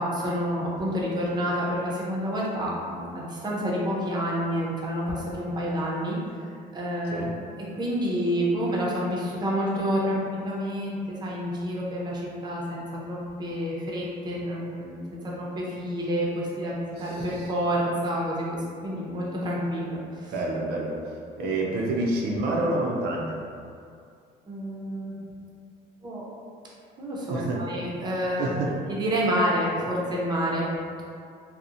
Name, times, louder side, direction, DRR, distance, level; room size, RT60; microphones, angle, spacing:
voice 1, 0.0-6.2 6.7-7.3 7.8-20.0 24.5-25.1 26.0-26.2 27.0-28.5 28.9-31.0, equal, 25° right, -4 dB, 0.5 m, -28 dB
voice 2, 17.0-17.5 20.3-23.4 27.3-27.7 28.4-28.8, right 2 dB, 75° right, -2 dB, 0.4 m, -28 dB
2.7 x 2.0 x 2.4 m, 2.4 s
cardioid pair, 110°, 17 cm